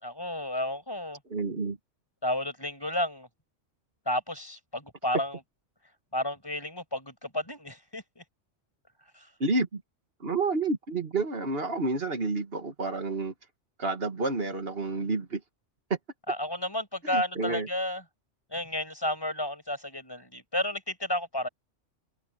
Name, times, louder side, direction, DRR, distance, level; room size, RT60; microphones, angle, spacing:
voice 1, 0.0-1.2 2.2-3.3 4.1-5.4 6.1-8.2 16.3-18.0 18.5-21.5, left 1 dB, 20° left, 6.1 m, -32 dB
voice 2, 1.3-1.8 9.4-9.8 10.2-13.3 13.8-15.4 17.0-17.7, right 3 dB, 50° right, 2.3 m, -29 dB
omnidirectional pair, 1.3 m